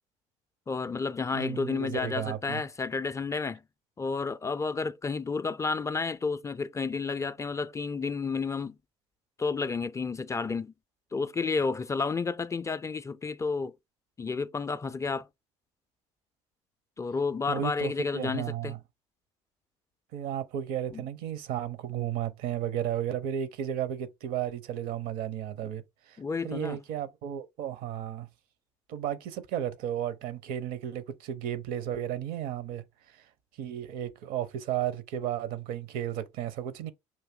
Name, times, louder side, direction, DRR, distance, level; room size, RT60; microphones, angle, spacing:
voice 1, 0.7-3.6 4.0-8.8 9.4-10.7 11.1-13.7 14.2-15.3 17.0-18.8 20.9-21.0 26.2-26.8, left 4 dB, 20° left, 0.3 m, -31 dB
voice 2, 1.3-2.6 17.5-18.8 20.1-25.8 26.4-28.3 28.9-32.8 33.6-36.9, right 10 dB, 65° right, 0.7 m, -33 dB
5.6 x 2.6 x 3.6 m
hypercardioid pair, 60°, 16 cm